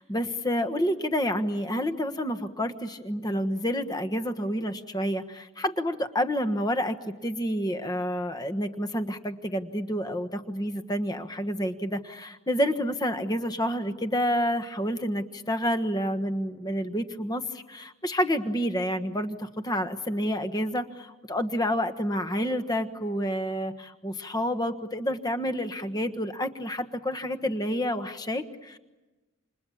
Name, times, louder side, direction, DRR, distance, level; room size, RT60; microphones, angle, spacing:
voice 1, 0.0-28.8, equal, 20° left, 9 dB, 1.3 m, -29 dB
29.5 x 28.0 x 7.2 m, 1.1 s
head